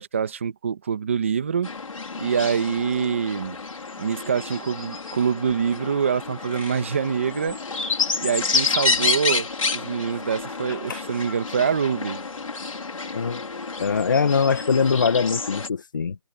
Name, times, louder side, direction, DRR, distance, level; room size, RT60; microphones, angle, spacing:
voice 1, 0.0-1.7 2.2-3.6 4.0-7.6 8.2-12.2, right 7 dB, 20° right, 1.4 m, -25 dB
sound 1, 1.6-15.7, left 4 dB, 65° left, 4.5 m, -29 dB
voice 2, 10.7-11.0 13.1-13.4 13.8-16.2, left 5 dB, 35° left, 1.6 m, -22 dB
hypercardioid pair, 180°, 19 cm